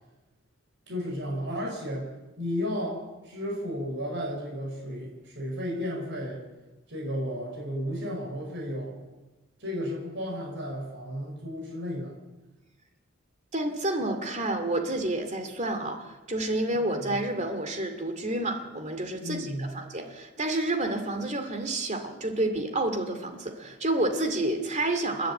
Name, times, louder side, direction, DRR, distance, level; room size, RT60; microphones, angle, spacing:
voice 1, 0.9-2.1 2.4-6.4 6.9-9.0 9.6-12.2 16.7-17.1 19.2-19.7, equal, 60° right, -1 dB, 5.9 m, -33 dB
voice 2, 13.5-25.3, right 1 dB, 35° right, 6 dB, 2.4 m, -29 dB
29.5 x 10.5 x 8.8 m, 1.2 s
head